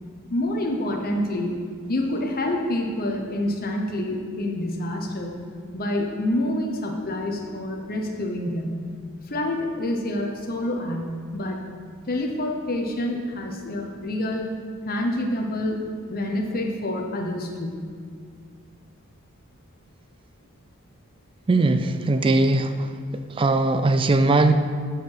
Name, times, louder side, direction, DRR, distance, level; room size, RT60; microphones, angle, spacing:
voice 1, 0.3-1.6 1.9-5.4 5.7-8.9 9.2-11.6 12.1-14.5 14.8-17.7, left 1 dB, 45° left, 1 dB, 0.9 m, -27 dB
voice 2, 21.5-22.7 23.4-24.5, right 2 dB, 25° right, 9 dB, 0.4 m, -19 dB
9.0 x 4.8 x 5.6 m, 2.1 s
head